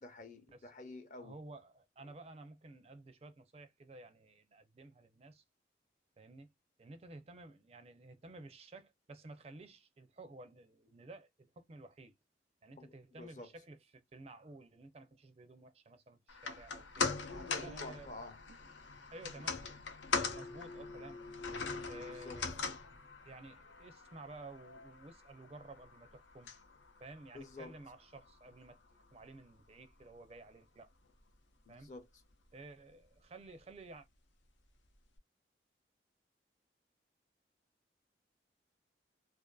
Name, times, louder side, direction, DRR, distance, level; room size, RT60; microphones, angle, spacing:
voice 1, 0.0-1.4 12.8-12.9 13.2-13.5 17.2-18.4 22.1-22.4 27.3-27.7 31.7-32.1, left 2 dB, 40° left, 0.7 m, -49 dB
voice 2, 1.2-5.4 6.2-6.5 6.8-12.1 12.6-17.2 17.6-18.1 18.5-18.7 19.1-19.7 20.3-21.2 21.9-22.7 23.2-26.5 27.0-28.8 29.1-30.9 31.7-31.9 32.5-34.1, right 2 dB, 35° right, 0.4 m, -53 dB
sound 1, 16.3-28.7 29.0-29.1, left 4 dB, 90° left, 0.7 m, -41 dB
2.5 x 2.5 x 2.2 m
head